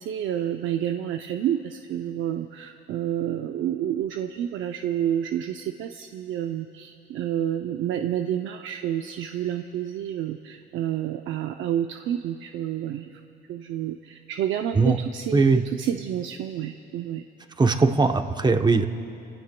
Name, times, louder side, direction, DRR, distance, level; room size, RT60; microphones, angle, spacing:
voice 1, 0.0-13.2 13.5-17.2, right 10 dB, 80° right, 6 dB, 0.6 m, -29 dB
voice 2, 17.6-18.9, right 3 dB, 20° right, 7 dB, 0.8 m, -20 dB
29.5 x 16.5 x 2.2 m, 2.8 s
cardioid pair, 90°, 20 cm